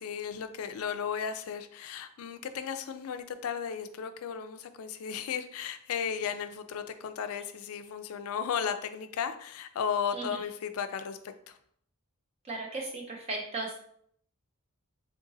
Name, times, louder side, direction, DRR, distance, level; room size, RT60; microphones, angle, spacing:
voice 1, 0.0-11.2 11.5-11.6, left 7 dB, 70° left, 10 dB, 0.4 m, -35 dB
voice 2, 12.5-13.8, right 2 dB, 25° right, 0 dB, 0.5 m, -36 dB
3.7 x 2.6 x 3.8 m, 0.66 s
head